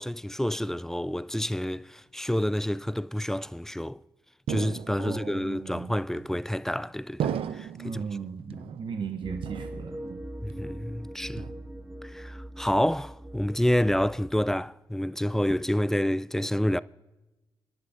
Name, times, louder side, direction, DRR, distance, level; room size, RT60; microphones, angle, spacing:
voice 1, 0.0-4.0 4.5-8.0 8.5-8.7 10.4-11.4 12.0-16.8, equal, 5° left, 0.3 m, -28 dB
sound 1, 4.5-5.3 6.2-6.7 7.2-8.0 8.5-9.1 9.4-10.2 10.5-10.9 11.4-12.0, right 9 dB, 75° right, 0.5 m, -36 dB
voice 2, 5.0-5.9 7.8-10.2, right 6 dB, 55° right, 0.9 m, -36 dB
sound 2, 9.2-14.5, right 1 dB, 10° right, 1.5 m, -41 dB
27.5 x 11.5 x 2.6 m
supercardioid pair, 55°, 10 cm